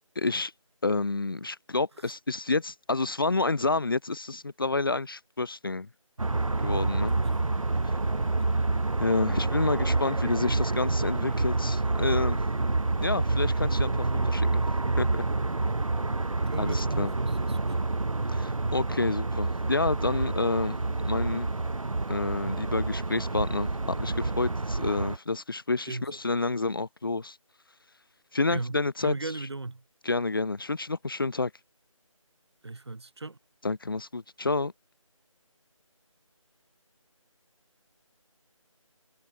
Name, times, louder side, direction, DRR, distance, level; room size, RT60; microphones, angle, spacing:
voice 1, 0.2-0.5 0.8-5.9 6.6-7.1 9.0-12.4 13.0-13.9 14.2-14.6 15.0-15.3 16.5-17.1 18.3-21.5 22.1-23.7 24.0-27.4 28.3-29.1 30.0-31.5 33.6-34.7, left 3 dB, 40° left, 1.2 m, -29 dB
sound 1, 6.2-25.2, right 3 dB, 70° right, 1.1 m, -28 dB
voice 2, 7.1-7.4 8.2-8.6 16.5-17.8 25.9-26.2 28.5-29.8 32.6-33.4, right 3 dB, 50° right, 5.0 m, -37 dB
figure-of-eight pair, 165°, 18 cm